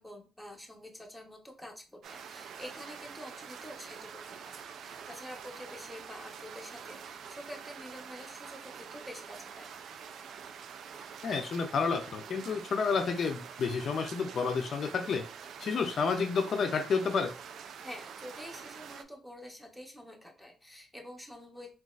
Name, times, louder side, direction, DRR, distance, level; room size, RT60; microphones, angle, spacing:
voice 1, 0.0-9.7 17.8-21.7, left 1 dB, ahead, 1 dB, 0.8 m, -47 dB
sound 1, 2.0-19.0, right 7 dB, 65° right, 0.3 m, -46 dB
voice 2, 11.2-15.2 15.6-17.3, left 5 dB, 55° left, 5 dB, 0.4 m, -30 dB
3.9 x 2.3 x 2.4 m, 0.35 s
cardioid pair, 90°, 0 cm